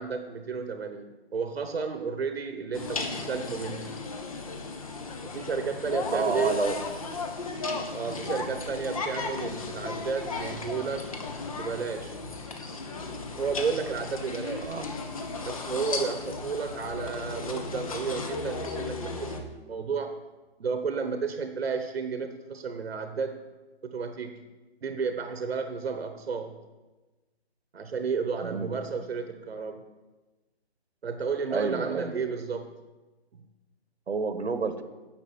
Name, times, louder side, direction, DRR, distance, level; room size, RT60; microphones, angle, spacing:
voice 1, 0.0-3.9 5.3-6.7 7.9-11.1 11.6-12.3 13.4-14.7 15.4-20.2 20.6-23.4 23.8-24.3 24.8-26.6 27.7-29.9 31.0-32.7, right 5 dB, 70° right, 7 dB, 1.2 m, -32 dB
sound 1, 2.7-19.4, left 3 dB, 35° left, 1.1 m, -35 dB
voice 2, 6.1-6.8 8.1-8.4 14.6-14.9 28.4-28.7 31.5-32.1 34.1-34.8, right 4 dB, 90° right, 9 dB, 1.4 m, -30 dB
10.0 x 6.3 x 7.9 m, 1.2 s
hypercardioid pair, 170°, 32 cm